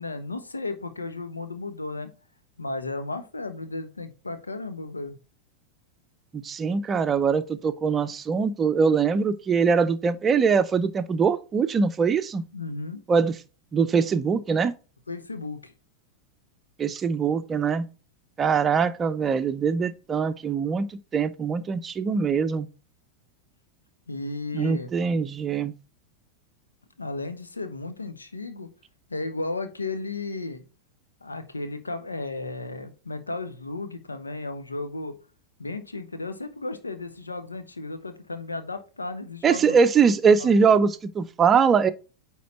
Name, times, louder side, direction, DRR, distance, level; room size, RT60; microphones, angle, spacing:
voice 1, 0.0-2.1 2.6-5.2 12.5-13.0 15.1-15.7 24.1-24.9 27.0-28.7 29.1-30.6 31.2-35.1 35.6-39.8 40.4-40.5, left 3 dB, 80° left, 1.1 m, -34 dB
voice 2, 6.3-12.4 13.1-13.3 13.7-14.7 16.8-17.8 18.4-22.7 24.5-25.7 39.4-41.9, right 6 dB, 20° right, 0.6 m, -22 dB
9.4 x 3.7 x 4.3 m
figure-of-eight pair, 90°, 0 cm